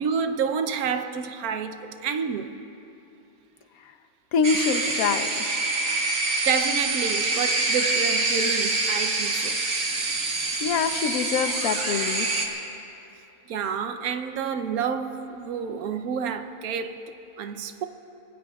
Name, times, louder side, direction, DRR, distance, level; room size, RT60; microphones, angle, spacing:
voice 1, 0.0-2.5 5.8-6.1 6.4-9.6 13.5-17.9, right 6 dB, 90° right, 1.2 m, -29 dB
voice 2, 4.3-5.5 10.6-12.3, left 6 dB, 80° left, 1.2 m, -25 dB
sound 1, 4.4-12.5, right 3 dB, 65° right, 1.8 m, -26 dB
24.5 x 19.0 x 2.3 m
omnidirectional pair, 1.5 m